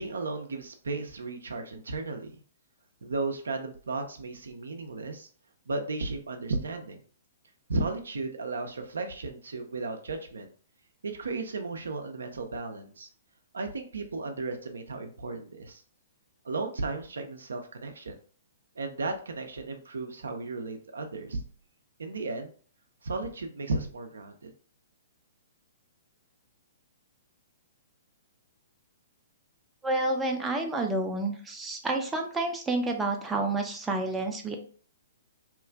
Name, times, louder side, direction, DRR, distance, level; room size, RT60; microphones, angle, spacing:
voice 1, 0.0-2.4 3.0-5.3 5.7-7.0 7.7-10.5 11.0-13.1 13.5-15.8 16.4-18.1 18.8-21.4 22.0-22.5 23.0-24.5, right 3 dB, 70° right, 6 dB, 0.4 m, -34 dB
voice 2, 29.8-34.6, right 2 dB, 10° right, 2 dB, 0.4 m, -29 dB
2.9 x 2.3 x 2.3 m, 0.43 s
figure-of-eight pair, 115°, 0 cm